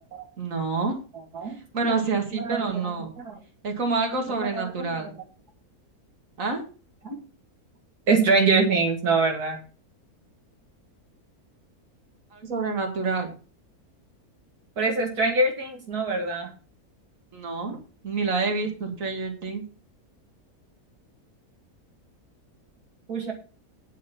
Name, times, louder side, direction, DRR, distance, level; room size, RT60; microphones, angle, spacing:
voice 1, 0.4-1.0 1.5-3.1 3.6-5.2 6.4-6.6 12.3-13.3 17.3-17.8 18.0-19.6, right 4 dB, 60° right, 3 dB, 2.6 m, -28 dB
voice 2, 2.3-2.9 3.2-3.3 4.5-4.6 7.1-7.2 8.1-9.6 14.8-16.5 23.1-23.3, right 3 dB, 80° right, 1 dB, 2.4 m, -23 dB
9.3 x 6.5 x 7.2 m, 0.37 s
omnidirectional pair, 1.6 m